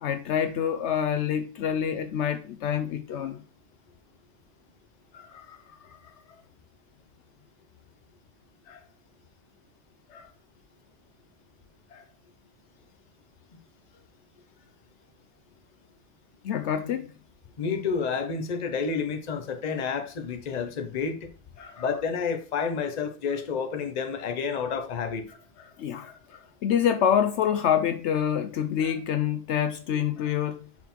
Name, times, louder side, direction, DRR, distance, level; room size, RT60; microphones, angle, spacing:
voice 1, 0.0-3.4 5.1-5.6 5.9-6.1 8.7-8.8 10.1-10.3 11.9-12.0 16.4-17.1 21.6-21.9 25.6-30.7, left 9 dB, 70° left, 0.8 m, -27 dB
voice 2, 17.6-21.3 21.8-25.3, left 5 dB, 40° left, 0.8 m, -30 dB
5.5 x 4.2 x 4.3 m
omnidirectional pair, 1.3 m